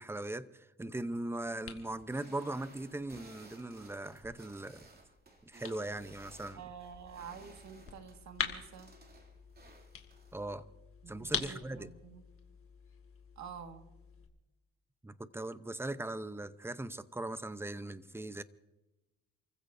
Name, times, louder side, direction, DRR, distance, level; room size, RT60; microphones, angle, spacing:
voice 1, 0.0-4.9 5.5-6.6 10.3-10.7 11.1-11.9 15.0-18.4, right 2 dB, 10° right, 0.7 m, -39 dB
sound 1, 0.8-14.3, left 6 dB, 45° left, 2.1 m, -46 dB
sound 2, 1.9-10.4, right 2 dB, 30° right, 2.6 m, -58 dB
voice 2, 6.5-8.9 11.0-12.2 13.4-13.8, right 7 dB, 70° right, 1.8 m, -49 dB
29.0 x 15.0 x 2.7 m
cardioid pair, 90°, 30 cm